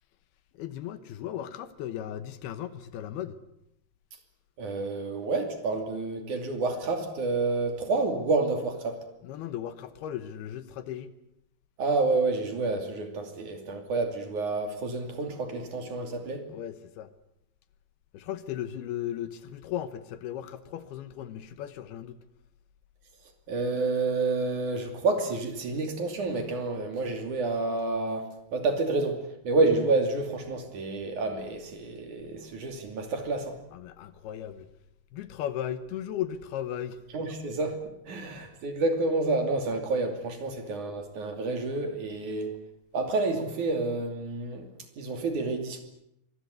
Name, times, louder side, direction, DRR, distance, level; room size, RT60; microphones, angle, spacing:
voice 1, 0.5-3.4 9.2-11.1 16.5-17.1 18.1-22.2 33.7-34.7 35.1-37.0, left 11 dB, 75° left, 3.0 m, -36 dB
voice 2, 4.6-9.0 11.8-16.5 23.5-29.2 29.4-33.6 37.1-37.8 38.1-42.5 42.9-44.7 45.0-45.8, right 3 dB, 50° right, 3.9 m, -29 dB
24.5 x 21.0 x 8.3 m
omnidirectional pair, 4.7 m